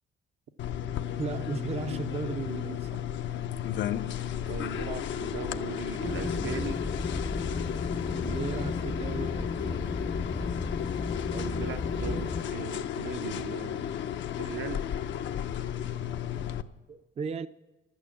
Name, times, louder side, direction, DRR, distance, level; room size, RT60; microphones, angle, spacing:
sound 1, 0.6-16.6, left 10 dB, 70° left, 0.6 m, -34 dB
voice 1, 1.2-2.9 8.2-10.0 16.9-17.5, right 5 dB, 30° right, 0.5 m, -36 dB
voice 2, 4.5-6.8 10.4-10.5 11.3-14.0 14.4-14.9, right 8 dB, 70° right, 0.7 m, -39 dB
sound 2, 6.0-12.4, left 3 dB, 20° left, 0.5 m, -34 dB
12.0 x 9.0 x 7.2 m
cardioid pair, 90°, 20 cm